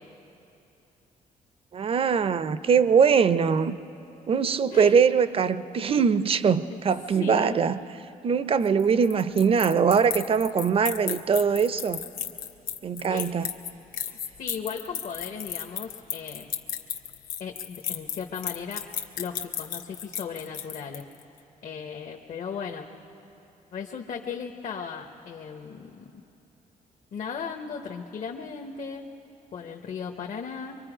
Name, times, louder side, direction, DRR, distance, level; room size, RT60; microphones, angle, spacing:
voice 1, 1.7-3.8 4.3-7.8 8.2-12.0 12.8-13.5, right 6 dB, 40° right, 14 dB, 0.6 m, -22 dB
voice 2, 7.2-7.5 13.1-13.3 14.1-16.5 17.4-18.9 19.2-21.0 21.6-22.9 23.7-26.1 27.1-29.1 29.5-30.8, left 6 dB, 55° left, 2 dB, 1.0 m, -36 dB
sound 1, 8.6-21.2, left 9 dB, 85° left, 1.1 m, -34 dB
24.5 x 24.0 x 5.0 m, 2.9 s
cardioid pair, 115°, 14 cm